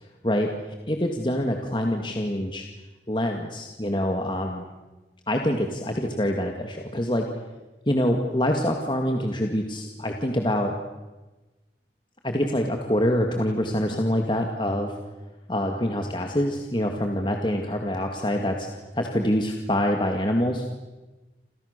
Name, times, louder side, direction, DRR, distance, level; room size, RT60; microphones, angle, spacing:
voice 1, 0.9-2.7 3.1-4.6 5.3-7.3 7.9-10.7 12.2-14.9 15.5-18.7 18.9-20.6, equal, 25° left, 3 dB, 2.0 m, -25 dB
29.5 x 27.5 x 6.8 m, 1.1 s
head